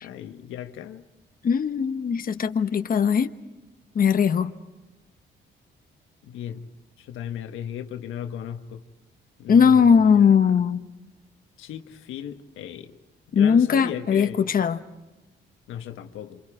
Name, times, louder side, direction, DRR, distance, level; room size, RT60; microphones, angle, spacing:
voice 1, 0.0-1.0 6.2-6.7 7.0-8.8 9.4-10.5 11.6-12.9 13.3-14.5 15.7-16.4, left 9 dB, 85° left, 1.5 m, -36 dB
voice 2, 1.4-3.3 3.9-4.5 9.5-10.8 13.3-14.8, left 6 dB, 45° left, 1.3 m, -19 dB
28.0 x 27.0 x 5.0 m
cardioid pair, 90°, 20 cm